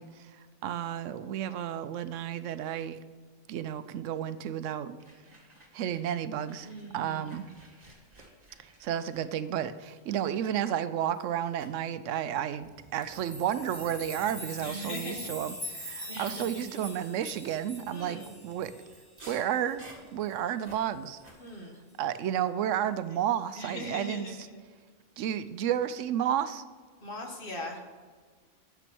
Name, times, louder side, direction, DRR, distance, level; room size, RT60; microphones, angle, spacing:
voice 1, 0.0-3.0 3.5-5.0 5.7-6.7 6.9-7.5 8.6-18.7 19.3-21.2 22.0-24.3 25.2-26.6, right 10 dB, 80° right, 13 dB, 0.9 m, -32 dB
sound 1, 4.6-6.1 6.4-10.6 11.0-11.3 11.6-11.8 12.4-21.3, right 1 dB, 35° right, 1.8 m, -55 dB
voice 2, 6.6-7.3 10.1-10.3 14.6-15.3 16.1-17.0 17.9-18.3 21.4-21.8 23.6-24.6 27.0-27.8, equal, 45° left, 2 dB, 1.5 m, -40 dB
sound 2, 12.9-19.8 20.2-20.3 20.6-20.7 21.3-21.4, left 1 dB, 20° left, 2.0 m, -43 dB
9.1 x 7.0 x 6.0 m, 1.5 s
omnidirectional pair, 1.3 m